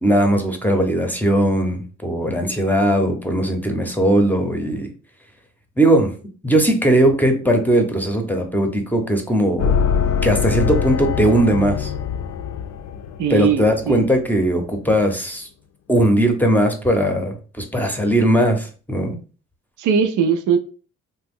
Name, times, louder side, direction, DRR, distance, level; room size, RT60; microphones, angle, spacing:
voice 1, 0.0-4.9 5.8-6.1 6.4-9.7 10.2-11.9 13.3-15.5 15.9-19.2, right 1 dB, 5° left, 4 dB, 0.7 m, -19 dB
sound 1, 9.6-14.3, left 7 dB, 65° left, 0.5 m, -23 dB
voice 2, 13.2-14.1 19.8-20.6, right 6 dB, 80° right, 7 dB, 0.5 m, -20 dB
2.9 x 2.2 x 3.5 m, 0.38 s
cardioid pair, 90°, 30 cm